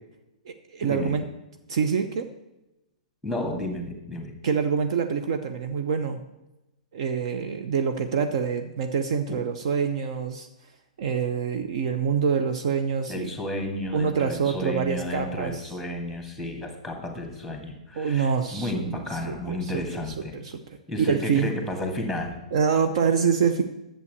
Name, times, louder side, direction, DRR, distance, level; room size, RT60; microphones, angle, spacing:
voice 1, 0.5-1.2 1.7-2.3 4.4-6.2 6.9-10.5 11.0-13.3 13.9-15.7 18.0-18.8 19.3-20.0 20.3-20.6 21.0-21.5 22.5-23.6, right 6 dB, 45° right, 6 dB, 0.8 m, -26 dB
voice 2, 3.2-4.3 9.3-9.4 13.1-20.4 20.9-22.4, left 1 dB, ahead, 3 dB, 2.1 m, -32 dB
11.0 x 7.6 x 6.8 m, 0.96 s
figure-of-eight pair, 115°, 4 cm